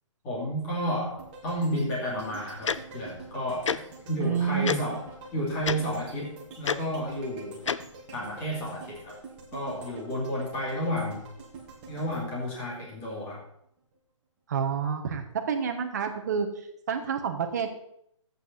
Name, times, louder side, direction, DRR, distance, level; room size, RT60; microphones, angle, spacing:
voice 1, 0.2-3.8 4.1-7.6 8.1-9.2 9.5-11.2 11.9-13.4, equal, 15° left, -4 dB, 2.5 m, -31 dB
sound 1, 1.2-13.4 13.8-13.9, right 4 dB, 20° right, 1.6 m, -46 dB
Tick-tock, 2.6-2.8 3.6-3.8 4.7-4.8 5.6-5.8 6.6-6.8 7.7-7.8, left 6 dB, 70° left, 0.6 m, -26 dB
voice 2, 4.2-4.8 14.5-16.5 16.9-17.7, right 7 dB, 35° right, 5 dB, 1.2 m, -28 dB
12.5 x 8.4 x 4.3 m, 0.72 s
hypercardioid pair, 175°, 16 cm